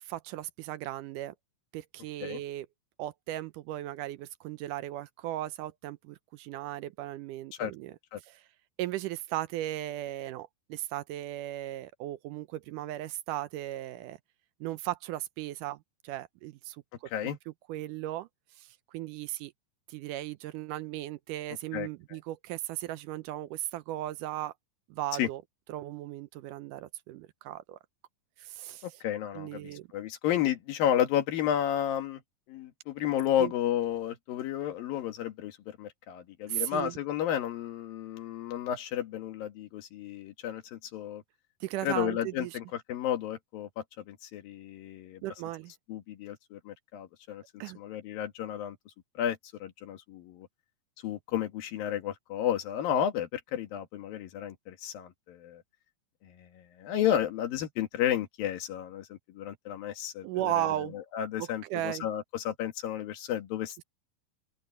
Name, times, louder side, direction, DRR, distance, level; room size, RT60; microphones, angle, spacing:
voice 1, 0.0-1.3 1.7-2.7 3.0-7.9 8.2-8.5 8.8-14.2 14.6-17.1 17.5-18.3 18.6-19.5 19.9-24.5 24.9-25.4 25.7-27.8 28.4-29.0 29.3-29.9 33.4-33.5 36.5-36.9 41.6-42.6 45.2-45.7 47.6-47.8 60.2-61.0 61.4-62.1, right 14 dB, 80° right, 2.1 m, -36 dB
voice 2, 28.8-32.2 32.5-41.2 41.8-45.2 45.9-47.4 47.8-48.8 49.2-50.5 51.0-55.6 56.2-60.7 61.1-63.8, left 10 dB, 80° left, 3.5 m, -32 dB
open air
omnidirectional pair, 4.0 m